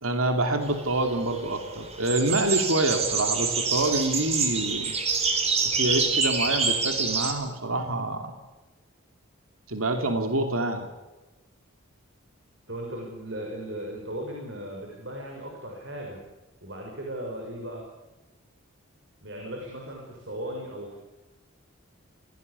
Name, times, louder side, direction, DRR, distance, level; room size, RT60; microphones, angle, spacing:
voice 1, 0.0-4.9 5.6-8.3 9.7-10.9, right 2 dB, 85° right, 5 dB, 3.0 m, -26 dB
sound 1, 0.6-7.3, right 4 dB, 30° right, 3.8 m, -27 dB
voice 2, 12.7-16.2 16.6-17.9 19.2-21.0, right 1 dB, 55° right, 0 dB, 6.2 m, -37 dB
28.0 x 18.0 x 8.4 m, 1.1 s
head